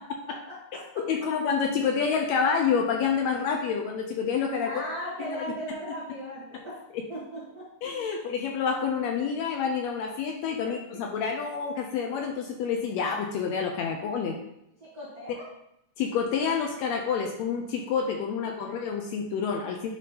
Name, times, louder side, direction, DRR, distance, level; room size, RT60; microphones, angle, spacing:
voice 1, 0.3-0.8 4.6-6.8 7.1-7.7 10.6-11.0 14.8-15.5 18.6-18.7, equal, 45° right, -7 dB, 1.2 m, -38 dB
voice 2, 1.0-4.8 5.2-5.3 7.8-14.4 16.0-19.9, left 6 dB, 75° left, 3 dB, 1.7 m, -28 dB
10.0 x 3.7 x 2.8 m, 0.80 s
omnidirectional pair, 3.4 m